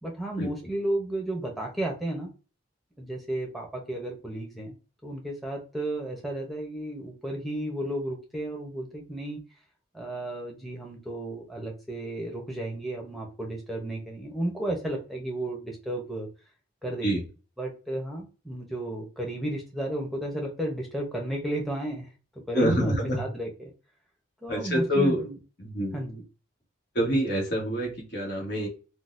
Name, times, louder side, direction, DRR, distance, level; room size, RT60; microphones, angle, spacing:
voice 1, 0.0-2.3 3.0-4.7 5.0-9.4 9.9-16.3 16.8-17.2 17.6-22.1 22.5-23.7 24.4-25.4 25.9-26.2, right 1 dB, ahead, 0 dB, 0.8 m, -33 dB
voice 2, 22.5-23.2 24.5-25.2 25.6-26.0 26.9-28.7, equal, 55° left, -1 dB, 1.3 m, -26 dB
3.8 x 2.2 x 2.5 m, 0.33 s
head